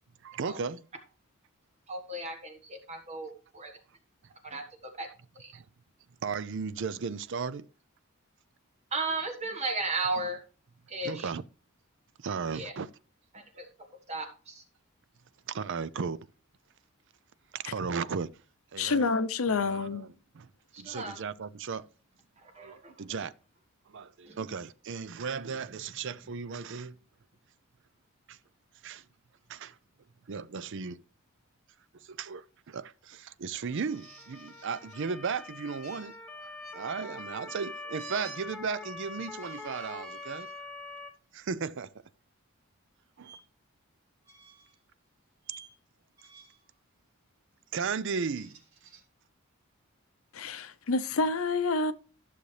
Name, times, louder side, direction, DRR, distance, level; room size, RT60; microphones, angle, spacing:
voice 1, 0.2-0.8 5.5-5.6 6.2-7.7 11.0-11.4 12.2-12.9 15.5-16.3 17.5-18.3 18.7-19.1 19.5-20.1 20.4-20.5 20.8-21.9 22.6-23.3 23.9-27.0 28.3-28.4 28.8-29.0 29.5-29.8 30.3-31.0 32.0-36.1 36.4-40.5 41.3-41.9 43.2-43.4 47.7-48.6, right 5 dB, 55° right, 0.5 m, -35 dB
voice 2, 1.9-3.8 4.4-4.6 5.0-5.1 5.3-5.5 8.9-10.4 10.9-11.3 12.5-12.7 13.3-13.7 14.1-14.6 20.7-21.2 22.4-22.9 24.2-24.4, right 3 dB, 30° right, 1.4 m, -35 dB
voice 3, 18.8-20.1 50.3-51.9, left 3 dB, 70° left, 0.7 m, -28 dB
Motor vehicle (road) / Siren, 33.6-41.1, left 3 dB, 5° left, 1.0 m, -44 dB
sound 1, 33.8-35.0 35.8-36.8 38.0-38.4 39.2-40.6 41.2-41.4 43.2-43.4 44.2-44.8 45.4-45.7 46.2-46.7 48.1-49.0, right 6 dB, 85° right, 4.2 m, -52 dB
13.5 x 6.7 x 3.3 m
head